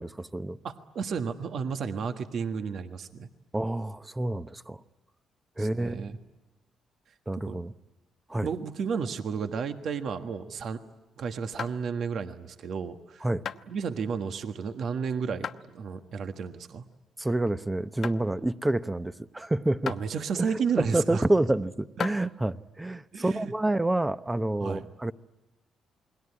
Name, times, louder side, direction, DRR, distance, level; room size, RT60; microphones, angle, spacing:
voice 1, 0.0-0.6 3.5-4.8 5.6-6.1 7.3-7.7 8.3-8.5 13.2-13.4 17.2-19.9 20.4-25.1, right 1 dB, 15° right, 0.9 m, -28 dB
voice 2, 0.6-3.3 5.6-6.2 7.3-7.6 8.4-10.8 11.2-13.3 13.7-16.9 19.9-21.2 23.1-23.5 24.6-24.9, right 6 dB, 65° right, 1.4 m, -32 dB
sound 1, 9.8-10.9 11.6-12.2 12.7-13.0 13.4-13.7 14.4-14.8 15.4-15.6 16.1-16.2 16.9-17.0 17.5-17.7 18.0-18.3 19.0-19.1 19.9-20.1 20.9-21.0 21.8-22.2, left 7 dB, 60° left, 1.0 m, -37 dB
28.5 x 21.0 x 9.8 m
cardioid pair, 90°, 0 cm